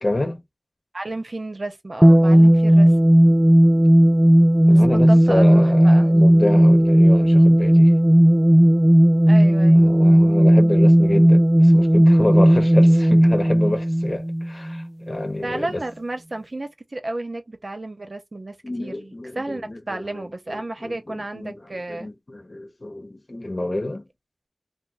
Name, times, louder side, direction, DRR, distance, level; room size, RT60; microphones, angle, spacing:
voice 1, 0.0-0.4 4.7-7.9 9.7-15.8 18.6-24.1, left 1 dB, 60° left, 0.8 m, -28 dB
voice 2, 0.9-2.9 4.7-6.2 9.3-9.9 15.4-22.1, right 2 dB, 70° right, 0.8 m, -32 dB
sound 1, 2.0-14.8, equal, 20° right, 0.3 m, -14 dB
3.1 x 2.1 x 3.8 m
wide cardioid pair, 50°, 0 cm